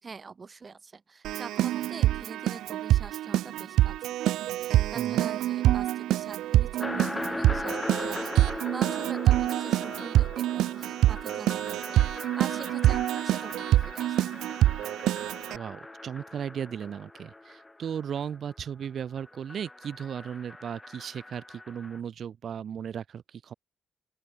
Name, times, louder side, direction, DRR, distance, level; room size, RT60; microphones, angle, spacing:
voice 1, 0.0-14.2, right 4 dB, 40° right, 4.1 m, -44 dB
Keyboard (musical), 1.2-15.6, right 14 dB, 85° right, 0.7 m, -26 dB
voice 2, 5.0-5.3 15.5-23.5, right 8 dB, 65° right, 2.9 m, -36 dB
sound 1, 6.8-18.5 18.8-22.0, left 2 dB, 15° left, 1.8 m, -40 dB
sound 2, 8.8-14.1, left 8 dB, 65° left, 5.6 m, -56 dB
open air
supercardioid pair, 65°, 0 cm